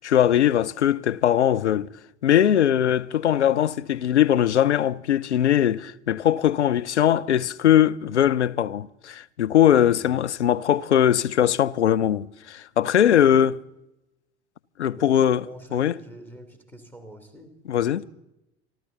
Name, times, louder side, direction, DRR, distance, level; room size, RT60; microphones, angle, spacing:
voice 1, 0.0-1.9 2.2-13.6 14.8-15.4 15.7-15.9 17.7-18.0, left 10 dB, 75° left, 0.6 m, -20 dB
voice 2, 15.0-17.8, right 1 dB, 5° left, 2.8 m, -45 dB
27.0 x 12.5 x 3.9 m
figure-of-eight pair, 70°, 35 cm